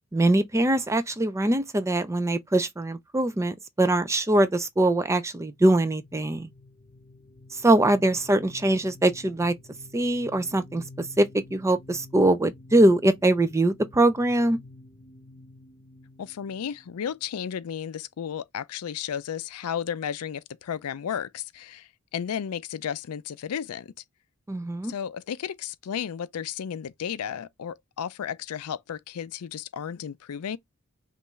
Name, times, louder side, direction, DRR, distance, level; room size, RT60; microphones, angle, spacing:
voice 1, 0.1-6.5 7.5-9.6 9.9-14.6 24.5-24.9, right 1 dB, 15° right, 0.4 m, -22 dB
sound 1, 5.4-17.8, left 2 dB, 40° left, 0.7 m, -50 dB
voice 2, 16.2-23.9 24.8-30.6, left 8 dB, 75° left, 0.4 m, -33 dB
5.4 x 2.5 x 3.1 m
head